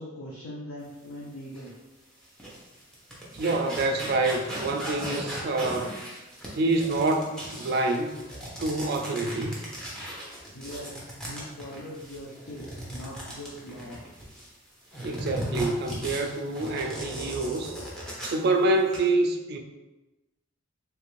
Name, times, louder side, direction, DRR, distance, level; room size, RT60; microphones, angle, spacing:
voice 1, 0.0-1.7 10.5-14.0, left 1 dB, 85° left, -5 dB, 0.6 m, -41 dB
sound 1, 1.5-1.7 2.2-14.5 14.9-18.5 18.8-19.0, right 1 dB, 5° left, 0.6 m, -37 dB
voice 2, 3.3-5.9 6.5-8.2 8.6-9.6 15.0-17.8 18.2-19.6, right 2 dB, 50° right, 3 dB, 0.3 m, -27 dB
3.2 x 2.5 x 3.0 m, 1.1 s
head